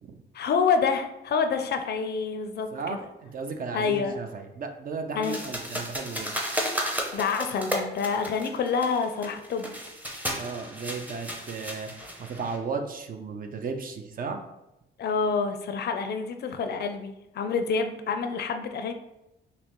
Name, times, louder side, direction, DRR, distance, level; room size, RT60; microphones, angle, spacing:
voice 1, 0.3-3.0 3.7-4.2 5.1-5.4 7.1-9.7 15.0-18.9, left 5 dB, 55° left, 7 dB, 0.5 m, -27 dB
voice 2, 2.7-6.3 10.3-14.4, right 4 dB, 45° right, 5 dB, 0.5 m, -35 dB
sound 1, 5.2-12.6, equal, 10° right, 0.7 m, -34 dB
5.3 x 2.0 x 3.0 m, 0.90 s
cardioid pair, 90°, 20 cm